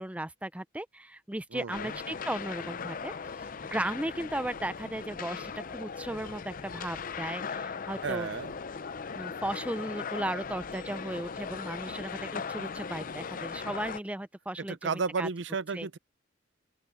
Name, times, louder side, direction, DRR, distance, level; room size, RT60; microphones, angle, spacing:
voice 1, 0.0-3.1 3.7-8.3 9.1-15.3 15.7-15.9, right 1 dB, 5° right, 0.5 m, -36 dB
voice 2, 1.5-2.0 8.0-8.5 14.6-16.0, right 5 dB, 65° right, 0.6 m, -33 dB
sound 1, 1.7-14.0, left 5 dB, 45° left, 0.5 m, -39 dB
open air
head